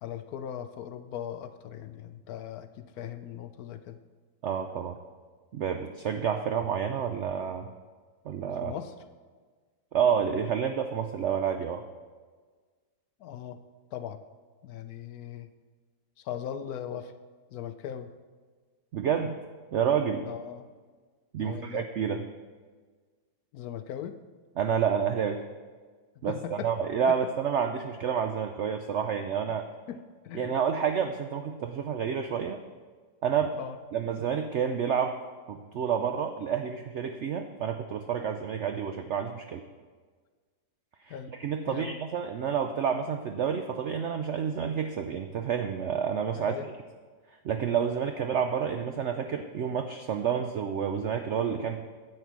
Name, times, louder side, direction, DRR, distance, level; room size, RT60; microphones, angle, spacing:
voice 1, 0.0-4.0 8.6-8.9 13.2-13.6 13.9-14.2 14.6-15.5 16.2-17.1 17.5-18.1 20.2-20.7 21.4-21.8 23.5-24.2 26.3-26.7 27.1-27.2 29.9-30.0 30.2-30.5 33.6-33.8 41.1-41.3 41.7-42.0 46.3-46.7, left 9 dB, 70° left, 10 dB, 1.0 m, -39 dB
voice 2, 4.4-5.0 5.5-7.7 8.3-8.7 9.9-11.8 18.9-19.4 19.7-20.3 21.3-22.2 24.6-25.4 26.2-29.7 30.3-32.6 33.2-33.5 33.9-35.2 35.5-39.6 41.0-46.5 47.4-51.8, right 7 dB, 75° right, 6 dB, 0.6 m, -29 dB
10.5 x 7.8 x 4.6 m, 1.5 s
omnidirectional pair, 1.8 m